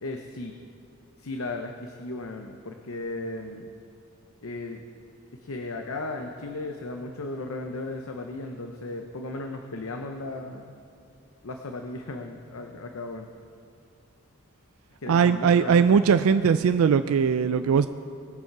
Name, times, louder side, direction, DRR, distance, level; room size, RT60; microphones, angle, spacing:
voice 1, 0.0-0.5 1.2-3.7 4.4-4.8 5.3-10.8 11.4-13.3 15.0-16.0, left 2 dB, 85° left, 4 dB, 0.8 m, -36 dB
voice 2, 15.1-17.9, right 6 dB, 85° right, 11 dB, 0.3 m, -20 dB
20.0 x 7.4 x 4.6 m, 2.5 s
head